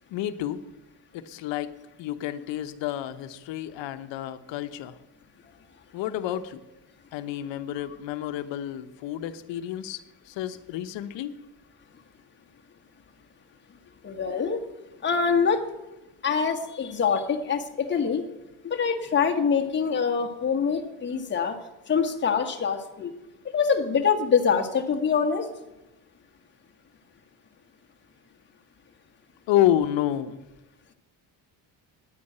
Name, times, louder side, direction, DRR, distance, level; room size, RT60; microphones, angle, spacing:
voice 1, 0.1-0.6 1.1-1.7 2.0-5.0 5.9-6.6 7.1-10.0 10.3-11.3 29.5-30.4, left 12 dB, 80° left, 9 dB, 1.0 m, -29 dB
voice 2, 14.0-14.6 15.0-15.6 16.2-18.2 18.6-21.6 21.9-23.1 23.5-25.5, left 6 dB, 25° left, 2 dB, 1.3 m, -24 dB
9.7 x 9.7 x 9.0 m, 0.98 s
cardioid pair, 140°, 44 cm